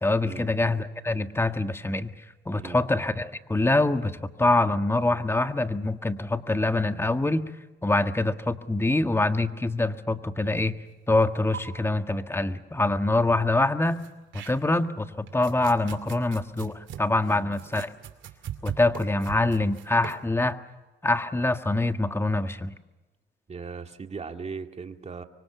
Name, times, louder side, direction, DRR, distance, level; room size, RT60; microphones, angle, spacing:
voice 1, 0.0-2.1 2.4-7.4 7.8-10.7 11.1-14.0 14.3-17.9 18.6-20.6 21.0-22.7, left 2 dB, 10° left, 8 dB, 1.6 m, -25 dB
sound 1, 11.2-11.3 11.5-11.6 13.8-14.9 15.3-20.3, right 9 dB, 70° right, 2.6 m, -40 dB
voice 2, 23.5-25.2, right 5 dB, 35° right, 6 dB, 2.2 m, -38 dB
25.5 x 24.5 x 7.0 m, 1.1 s
cardioid pair, 90°, 20 cm